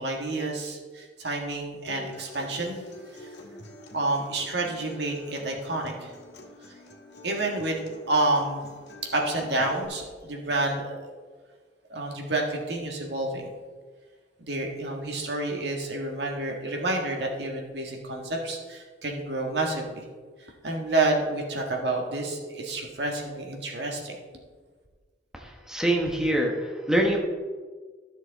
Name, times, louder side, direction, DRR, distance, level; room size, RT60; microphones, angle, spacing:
voice 1, 0.0-2.8 3.1-3.3 3.9-6.1 7.2-7.8 8.1-8.6 9.1-11.0 11.9-13.5 14.4-20.0 20.4-24.2, right 2 dB, 75° right, 0 dB, 1.6 m, -29 dB
Acoustic guitar, 1.9-9.8, left 2 dB, 75° left, 1.6 m, -47 dB
voice 2, 25.3-27.2, right 1 dB, 5° right, 0 dB, 1.0 m, -25 dB
13.0 x 6.4 x 4.0 m, 1.5 s
head